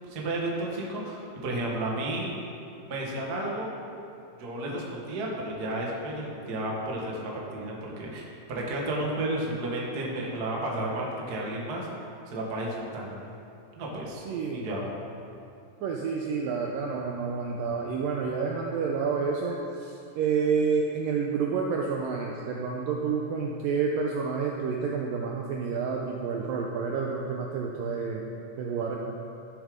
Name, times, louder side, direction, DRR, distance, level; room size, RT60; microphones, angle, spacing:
voice 1, 0.1-2.3 2.9-3.7 4.4-11.9 12.3-13.3 13.7-14.2 14.5-14.9, right 1 dB, 45° right, -3 dB, 1.3 m, -32 dB
voice 2, 14.3-14.7 15.8-28.2 28.6-29.0, right 5 dB, 80° right, 0 dB, 2.0 m, -29 dB
15.0 x 7.4 x 5.1 m, 2.6 s
omnidirectional pair, 4.7 m